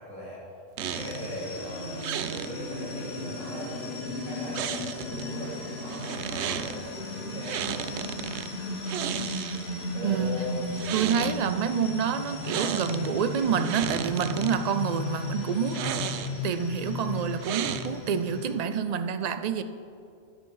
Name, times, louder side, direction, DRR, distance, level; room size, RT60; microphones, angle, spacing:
voice 1, 0.1-0.4 0.8-1.9 2.3-7.8 9.9-10.6, left 1 dB, 5° left, -10 dB, 3.0 m, -39 dB
sound 1, 0.8-18.5, left 2 dB, 60° left, 1.6 m, -35 dB
sound 2, 0.8-1.3 2.0-2.5 4.5-5.2 5.9-6.8 7.4-8.5 8.8-9.8 10.6-11.4 12.4-13.1 13.4-14.6 15.6-16.5 17.4-18.1, right 9 dB, 75° right, 0.8 m, -33 dB
voice 2, 10.0-10.3 10.9-15.8 16.4-19.6, right 7 dB, 55° right, 10 dB, 0.4 m, -28 dB
9.9 x 9.5 x 4.8 m, 2.4 s
omnidirectional pair, 1.2 m